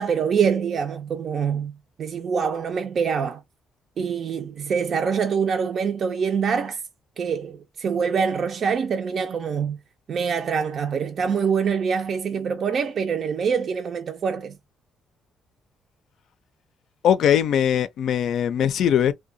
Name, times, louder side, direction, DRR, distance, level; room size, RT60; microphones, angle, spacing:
voice 1, 0.0-3.4 4.0-6.8 7.2-9.8 10.1-14.6, right 6 dB, 55° right, 0.4 m, -25 dB
voice 2, 17.0-19.1, left 9 dB, 70° left, 0.4 m, -20 dB
2.7 x 2.2 x 2.6 m
cardioid pair, 100°, 0 cm